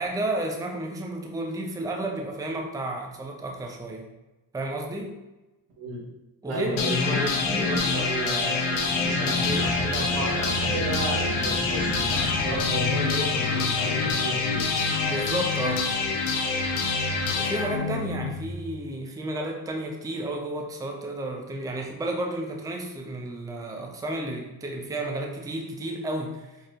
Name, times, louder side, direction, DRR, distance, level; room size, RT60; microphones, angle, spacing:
voice 1, 0.0-4.1 4.5-5.2 6.4-8.0 15.0-16.0 17.3-26.7, right 1 dB, 10° right, 1 dB, 0.5 m, -32 dB
voice 2, 6.5-14.7, right 1 dB, 85° right, -3 dB, 1.4 m, -32 dB
sound 1, 6.8-18.7, left 4 dB, 80° left, 0.8 m, -26 dB
sound 2, 7.3-12.9, left 3 dB, 55° left, 0.8 m, -37 dB
4.5 x 3.0 x 2.5 m, 1.0 s
supercardioid pair, 70°, 48 cm